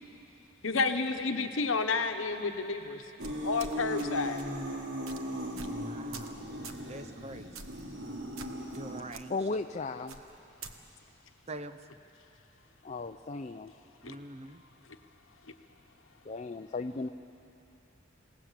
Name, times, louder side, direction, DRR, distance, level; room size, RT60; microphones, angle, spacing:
voice 1, 0.6-3.0 3.4-4.4 14.0-14.2, left 4 dB, 65° left, 7 dB, 1.1 m, -30 dB
sound 1, 3.2-9.0, equal, 55° right, 2.7 m, -38 dB
sound 2, 3.2-4.1 4.4-4.6 5.1-5.2 5.6-5.8 6.1-6.4 6.6-6.8 7.6-7.8 8.4-8.8 9.1-9.2 10.1-10.7, right 4 dB, 80° right, 1.3 m, -45 dB
voice 2, 5.8-6.4 6.9-7.5 8.7-9.3 11.5-11.8 14.0-14.6, right 2 dB, 30° right, 10 dB, 0.7 m, -44 dB
voice 3, 9.3-10.2 12.8-13.7 16.2-17.1, left 3 dB, 30° left, 6 dB, 0.5 m, -35 dB
27.0 x 18.0 x 7.5 m, 2.9 s
head